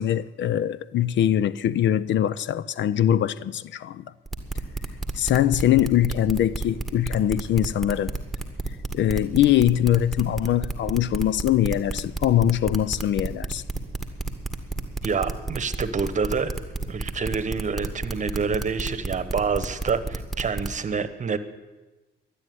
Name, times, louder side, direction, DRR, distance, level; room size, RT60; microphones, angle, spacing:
voice 1, 0.0-4.1 5.1-8.1 8.9-13.6, left 11 dB, 65° left, 0.5 m, -22 dB
sound 1, 4.3-20.7, right 2 dB, ahead, 1.7 m, -30 dB
voice 2, 15.0-16.5 16.9-21.4, right 5 dB, 40° right, 1.1 m, -27 dB
12.5 x 10.0 x 9.3 m
cardioid pair, 90°, 20 cm